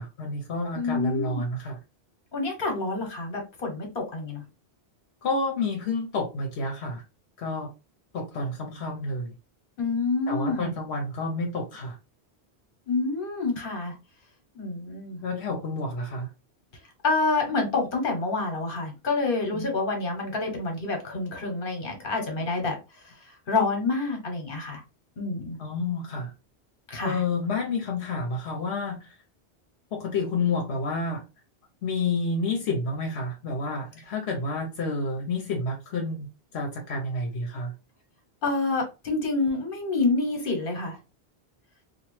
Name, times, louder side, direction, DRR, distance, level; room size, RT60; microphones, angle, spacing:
voice 1, 0.0-1.8 5.2-7.0 7.4-7.7 8.1-9.3 10.3-12.0 15.2-16.3 19.5-19.7 25.6-26.3 27.0-29.1 29.9-31.2 31.8-36.3 36.5-37.7, left 3 dB, 80° left, 1.0 m, -29 dB
voice 2, 0.7-1.4 2.3-4.4 9.8-10.8 12.9-13.9 14.5-15.2 17.0-22.8 23.0-24.8 25.2-25.6 26.9-27.2 38.4-41.0, left 3 dB, 60° left, 1.2 m, -28 dB
2.9 x 2.3 x 3.0 m
omnidirectional pair, 1.1 m